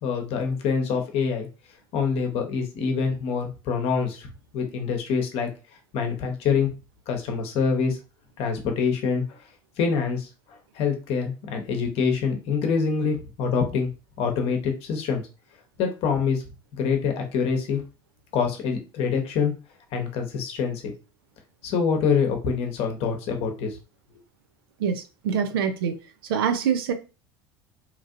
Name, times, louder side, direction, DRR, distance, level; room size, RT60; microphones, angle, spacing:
voice 1, 0.0-1.5 1.9-4.3 4.5-5.5 5.9-6.7 7.1-8.0 8.4-9.4 9.8-13.9 14.2-15.2 15.8-16.4 16.7-17.8 18.3-19.5 19.9-20.9 21.6-23.8, left 5 dB, 55° left, 0.8 m, -25 dB
voice 2, 24.8-26.0 26.3-26.9, right 7 dB, 80° right, 0.5 m, -25 dB
2.9 x 2.5 x 2.5 m
hypercardioid pair, 85°, 12 cm